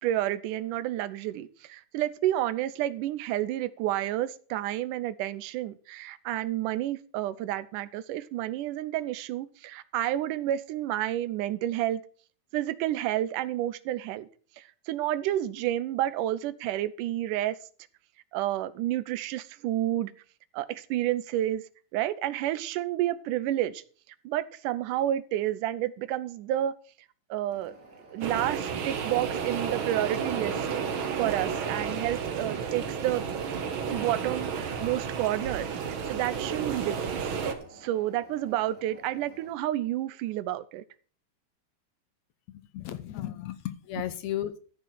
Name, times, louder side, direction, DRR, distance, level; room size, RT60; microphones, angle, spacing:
voice 1, 0.0-12.0 12.5-14.3 14.6-17.6 18.3-20.1 20.5-21.6 21.9-23.8 24.3-26.8 27.3-27.7 28.1-30.6 31.2-33.2 33.9-37.1 37.7-40.8, right 13 dB, 90° right, 16 dB, 2.3 m, -30 dB
sound 1, 27.5-39.5, right 2 dB, 20° right, 3.4 m, -52 dB
sound 2, 28.2-37.5, right 6 dB, 55° right, 1.7 m, -32 dB
voice 2, 42.5-44.6, left 12 dB, 70° left, 12 dB, 2.1 m, -35 dB
13.5 x 6.5 x 6.1 m, 0.42 s
omnidirectional pair, 3.6 m